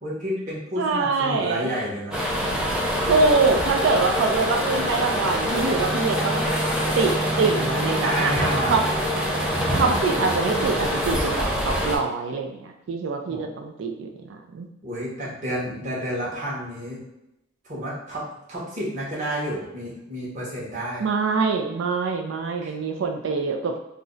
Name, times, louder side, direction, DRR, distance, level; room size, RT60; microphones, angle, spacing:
voice 1, 0.0-2.2 7.4-7.5 8.0-8.8 10.1-10.2 13.3-13.4 14.8-17.0 17.6-18.2 18.5-21.1 22.6-22.7, equal, 40° right, -7 dB, 1.0 m, -30 dB
voice 2, 0.8-1.8 3.1-6.4 7.0-8.8 9.7-14.7 21.0-23.8, right 4 dB, 65° right, 3 dB, 0.4 m, -24 dB
sound 1, 2.1-12.0, equal, 5° right, 0.5 m, -25 dB
2.5 x 2.1 x 3.7 m, 0.89 s
head